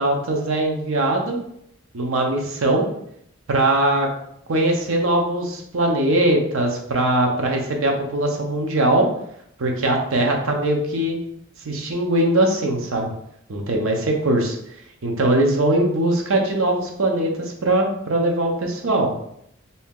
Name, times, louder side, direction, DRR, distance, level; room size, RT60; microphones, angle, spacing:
voice 1, 0.0-1.4 1.9-2.9 3.5-4.1 4.5-9.1 9.6-11.2 11.6-13.1 13.5-14.6 15.0-19.1, right 1 dB, 75° right, 2 dB, 0.7 m, -21 dB
2.8 x 2.7 x 3.6 m, 0.74 s
head